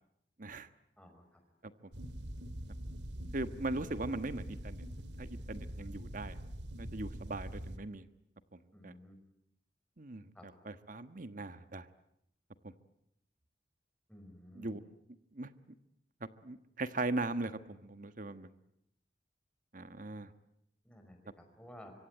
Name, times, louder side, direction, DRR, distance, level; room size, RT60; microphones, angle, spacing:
sound 1, 1.9-7.8, right 1 dB, 80° right, 2.1 m, -44 dB
voice 1, 3.3-4.8 5.2-6.3 6.7-8.0 8.8-8.9 10.0-11.9 14.5-14.8 15.3-15.5 16.4-18.5 19.7-20.3, right 2 dB, 50° right, 11 dB, 1.4 m, -39 dB
voice 2, 8.7-9.2 10.4-10.5 14.1-14.8 20.9-21.9, equal, 5° left, 4 dB, 5.3 m, -54 dB
25.0 x 25.0 x 9.1 m, 0.76 s
head